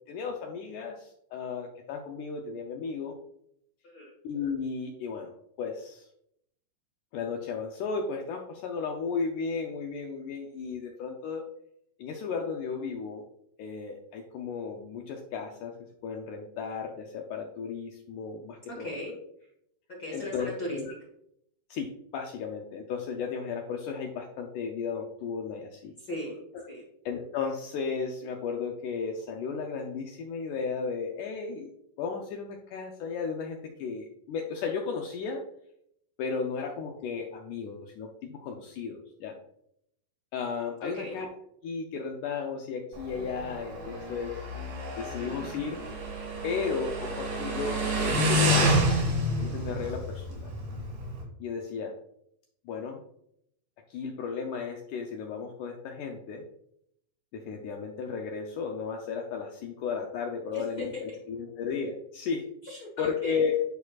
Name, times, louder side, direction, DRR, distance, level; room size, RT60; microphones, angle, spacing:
voice 1, 0.1-3.2 4.2-5.3 5.6-6.1 7.1-11.4 12.0-13.2 13.6-15.7 16.0-18.9 20.1-20.9 21.7-25.9 27.1-31.7 32.0-35.4 36.2-39.3 40.3-41.3 41.6-44.3 45.0-45.8 46.4-48.9 49.4-50.5 51.4-51.9 52.7-53.0 53.9-56.4 57.3-62.5 63.0-63.6, left 5 dB, 80° left, 2 dB, 1.8 m, -34 dB
voice 2, 18.7-19.1 20.0-20.8 26.0-26.4 26.7-26.8 40.8-41.1 60.5-60.9 62.6-63.4, left 1 dB, 60° left, -3 dB, 1.0 m, -37 dB
Motorcycle, 42.9-51.2, equal, 90° right, 4.2 m, -29 dB
10.5 x 4.5 x 2.3 m, 0.75 s
omnidirectional pair, 4.2 m